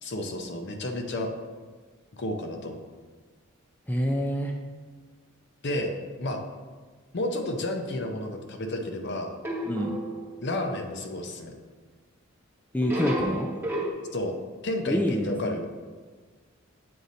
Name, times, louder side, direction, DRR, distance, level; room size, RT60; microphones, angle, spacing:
voice 1, 0.0-1.3 2.1-2.9 5.6-5.9 6.2-6.4 7.1-9.3 10.4-11.5 14.1-14.4 14.6-15.7, left 1 dB, 55° left, 4 dB, 0.6 m, -31 dB
voice 2, 3.9-4.5 9.6-10.0 12.7-13.5 14.9-15.6, equal, 10° left, 1 dB, 0.3 m, -27 dB
sound 1, 9.4-10.5 12.8-13.9, right 1 dB, 10° right, 1.0 m, -32 dB
7.7 x 2.7 x 5.0 m, 1.5 s
head